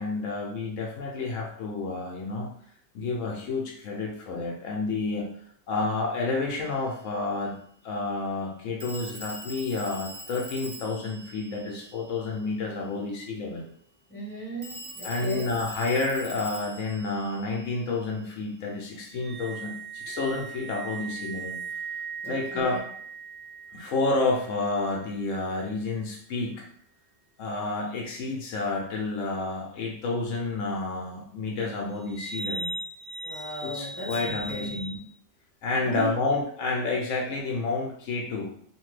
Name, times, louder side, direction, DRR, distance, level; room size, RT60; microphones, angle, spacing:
voice 1, 0.0-2.5 2.9-5.3 5.7-7.6 7.8-13.7 15.0-21.6 22.3-22.8 23.7-26.6 27.4-32.7 33.6-35.0 35.6-38.5, left 3 dB, 75° left, -1 dB, 1.0 m, -30 dB
Telephone, 6.5-6.7 8.8-12.5 14.6-18.3, right 1 dB, 30° right, 0.6 m, -43 dB
voice 2, 14.1-15.5 22.2-22.8 33.2-34.7 35.8-36.2, right 1 dB, ahead, -8 dB, 1.3 m, -36 dB
sound 1, 19.0-25.3 32.0-35.0, right 4 dB, 65° right, 1.0 m, -38 dB
2.9 x 2.6 x 3.1 m, 0.64 s
omnidirectional pair, 1.3 m